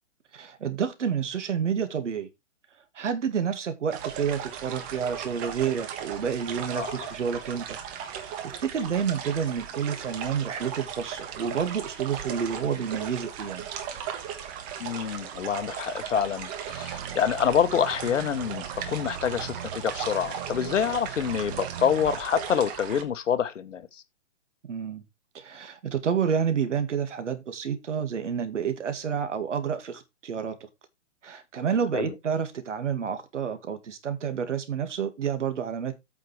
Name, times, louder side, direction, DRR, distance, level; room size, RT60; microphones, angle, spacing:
voice 1, 0.3-2.3 2.9-7.8 8.2-13.7 24.7-25.0 25.3-30.7 31.2-35.9, right 7 dB, 70° right, 2.4 m, -29 dB
sound 1, 3.9-23.0, right 8 dB, 20° right, 1.3 m, -37 dB
voice 2, 6.8-7.1 14.8-24.0 31.9-32.1, left 8 dB, 75° left, 1.0 m, -27 dB
sound 2, 16.7-22.2, right 10 dB, 45° right, 0.7 m, -40 dB
8.9 x 6.2 x 4.5 m
hypercardioid pair, 145°, 38 cm